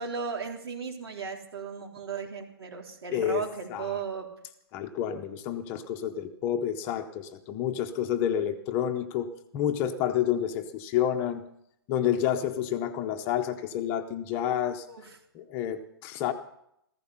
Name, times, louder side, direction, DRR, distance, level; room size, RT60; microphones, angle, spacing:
voice 1, 0.0-4.3 14.9-15.2, right 6 dB, 85° right, 2 dB, 3.8 m, -36 dB
voice 2, 3.1-3.9 4.7-11.4 11.9-14.9 15.3-16.3, left 10 dB, 15° left, 7 dB, 0.6 m, -29 dB
15.0 x 14.5 x 5.7 m, 0.74 s
hypercardioid pair, 170°, 13 cm